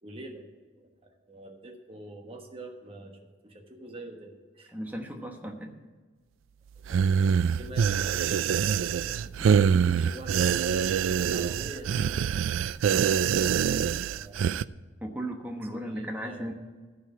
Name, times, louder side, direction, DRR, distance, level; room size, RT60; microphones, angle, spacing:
voice 1, 0.0-0.5 0.7-4.7 6.8-7.2 7.6-8.6 9.0-9.2 9.8-12.3 14.1-14.4 15.2-15.3 15.7-16.5, right 1 dB, 30° right, 3 dB, 1.2 m, -45 dB
voice 2, 4.7-5.8 9.3-9.5 12.8-13.0 15.0-16.5, right 1 dB, 10° right, 2 dB, 1.1 m, -36 dB
sound 1, 6.9-14.6, right 7 dB, 80° right, 0.3 m, -25 dB
14.5 x 4.9 x 8.1 m, 1.4 s
head